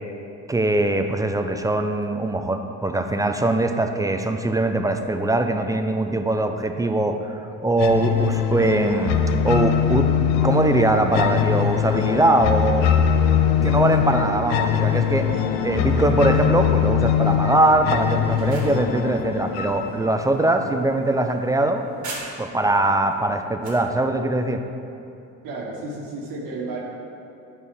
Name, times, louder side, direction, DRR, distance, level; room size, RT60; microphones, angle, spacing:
voice 1, 0.5-10.1 10.4-12.9 13.6-15.3 15.6-21.8 22.4-24.6, right 2 dB, 10° right, 6 dB, 0.3 m, -22 dB
sound 1, 7.8-20.8, left 8 dB, 90° left, 0.5 m, -22 dB
sound 2, 18.1-22.7 23.1-23.9, right 3 dB, 55° right, 1.5 m, -41 dB
voice 2, 25.4-26.8, right 3 dB, 70° right, -3 dB, 1.6 m, -32 dB
8.5 x 4.6 x 3.5 m, 2.6 s
supercardioid pair, 85°, 35 cm